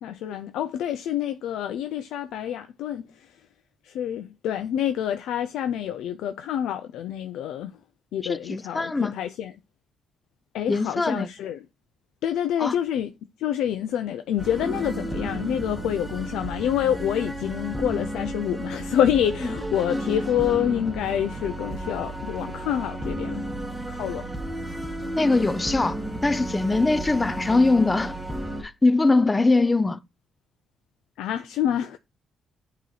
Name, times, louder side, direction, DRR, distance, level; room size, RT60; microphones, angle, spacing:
voice 1, 0.0-3.3 3.8-7.7 8.1-9.5 10.5-11.6 12.2-13.1 13.4-23.4 23.9-24.3 31.2-32.0, left 10 dB, 85° left, 0.4 m, -27 dB
voice 2, 8.2-9.1 10.7-11.3 12.6-12.7 19.4-19.5 25.1-28.2 28.6-30.0, left 3 dB, 20° left, 0.5 m, -22 dB
sound 1, 14.4-28.6, right 1 dB, ahead, 1.1 m, -32 dB
8.2 x 3.0 x 4.0 m
cardioid pair, 90°, 0 cm